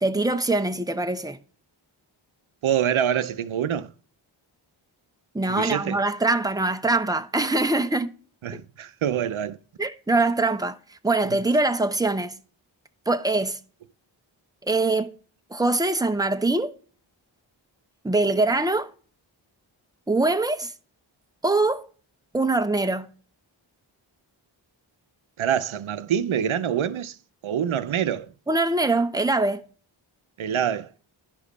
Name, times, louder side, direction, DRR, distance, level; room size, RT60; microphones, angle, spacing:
voice 1, 0.0-1.4 5.3-8.1 9.8-12.3 13.1-13.6 14.6-15.1 15.5-16.7 18.0-18.9 20.1-20.7 21.4-21.8 22.3-23.1 28.5-29.6, right 2 dB, 10° right, 0.9 m, -23 dB
voice 2, 2.6-3.9 5.5-6.0 8.4-9.6 25.4-27.2 27.4-28.3 30.4-30.9, right 9 dB, 90° right, 0.7 m, -25 dB
11.0 x 5.1 x 4.0 m
cardioid pair, 45°, 48 cm